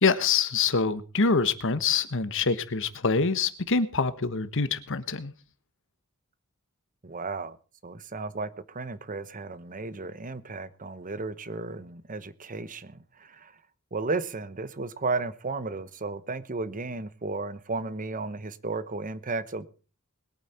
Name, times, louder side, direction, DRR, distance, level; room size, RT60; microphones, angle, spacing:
voice 1, 0.0-5.3, left 4 dB, 60° left, 1.3 m, -25 dB
voice 2, 7.0-7.6 7.8-13.5 13.9-19.7, right 3 dB, 35° right, 1.0 m, -34 dB
21.0 x 9.0 x 4.4 m
head